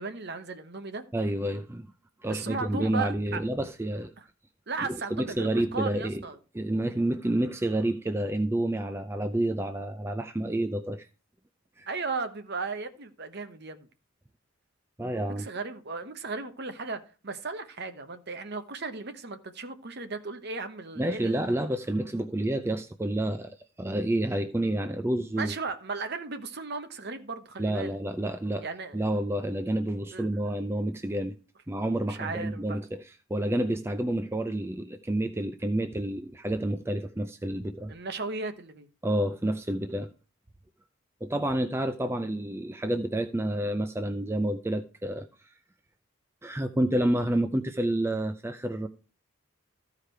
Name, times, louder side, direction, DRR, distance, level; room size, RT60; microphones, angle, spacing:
voice 1, 0.0-1.0 2.3-3.4 4.2-4.3 4.7-6.4 11.9-13.9 15.3-21.5 25.4-27.9 28.6-29.0 30.1-30.3 32.1-32.8 37.9-38.9, right 4 dB, 50° right, 1.0 m, -36 dB
voice 2, 1.1-1.9 2.2-4.1 4.9-6.2 6.5-11.1 11.8-11.9 15.0-15.5 21.0-25.5 27.6-28.6 28.9-31.4 31.7-37.9 39.0-40.1 41.2-45.5 46.4-48.9, right 1 dB, 10° right, 0.4 m, -29 dB
13.5 x 4.9 x 4.5 m
head